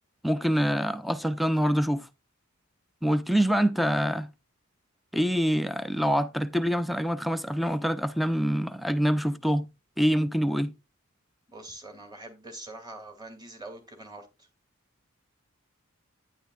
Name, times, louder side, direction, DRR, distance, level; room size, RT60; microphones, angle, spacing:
voice 1, 0.2-2.1 3.0-4.3 5.1-9.7 10.0-10.7, equal, ahead, 0.4 m, -25 dB
voice 2, 11.5-14.5, right 2 dB, 20° right, 2.2 m, -44 dB
11.5 x 9.7 x 2.3 m
head